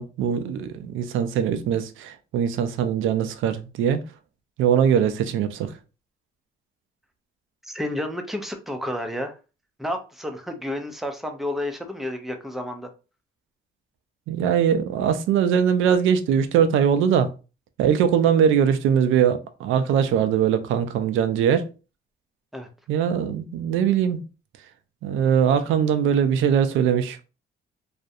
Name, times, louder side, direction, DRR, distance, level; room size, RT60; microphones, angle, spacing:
voice 1, 0.0-4.0 4.6-5.7 14.3-17.3 17.8-21.7 22.9-24.2 25.0-27.2, right 8 dB, 80° right, 0.4 m, -21 dB
voice 2, 7.6-9.4 9.8-12.9 22.5-22.7, left 1 dB, ahead, 0.5 m, -31 dB
2.4 x 2.1 x 2.6 m
cardioid pair, 90°, 20 cm